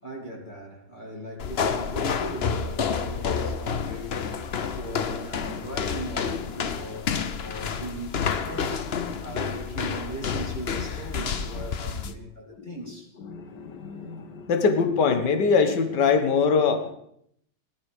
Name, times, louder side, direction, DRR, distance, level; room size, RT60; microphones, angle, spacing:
voice 1, 0.0-13.1, right 1 dB, 20° left, 2.3 m, -39 dB
sound 1, 1.4-12.2, left 6 dB, 80° left, 0.5 m, -29 dB
voice 2, 13.2-16.9, left 5 dB, 55° left, 2.1 m, -24 dB
18.5 x 12.0 x 5.1 m
omnidirectional pair, 2.3 m